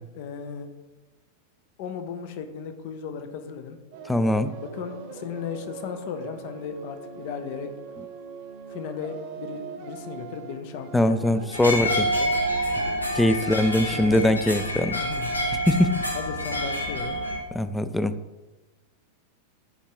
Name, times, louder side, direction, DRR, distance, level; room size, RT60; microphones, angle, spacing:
voice 1, 0.1-0.7 1.8-3.8 4.6-7.7 8.7-12.3 13.9-14.2 15.0-15.3 16.1-17.2, left 7 dB, 50° left, 8 dB, 0.6 m, -36 dB
sound 1, 3.9-14.1, right 5 dB, 45° right, 0.8 m, -41 dB
voice 2, 4.1-4.5 10.9-12.1 13.1-15.0 15.7-15.9 17.5-18.1, left 1 dB, 5° left, 12 dB, 0.3 m, -22 dB
sound 2, 11.5-17.4, equal, 80° left, 0.8 m, -27 dB
9.3 x 3.5 x 3.0 m, 1.1 s
figure-of-eight pair, 90°, 0 cm